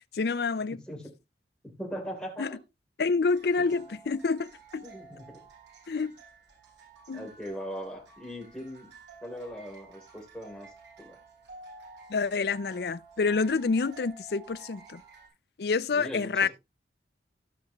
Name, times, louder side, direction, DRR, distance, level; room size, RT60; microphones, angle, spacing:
voice 1, 0.1-0.8 2.4-2.5 3.0-4.8 5.9-6.2 7.1-7.3 12.1-15.0 15.6-16.5, left 4 dB, 60° left, 0.5 m, -28 dB
voice 2, 0.7-1.1 1.6-2.6 3.6-3.8 4.8-5.5 7.1-8.9 9.2-11.2 15.9-16.5, equal, 5° left, 3.2 m, -40 dB
sound 1, 3.2-15.3, right 4 dB, 90° right, 6.9 m, -52 dB
17.0 x 5.9 x 3.0 m
head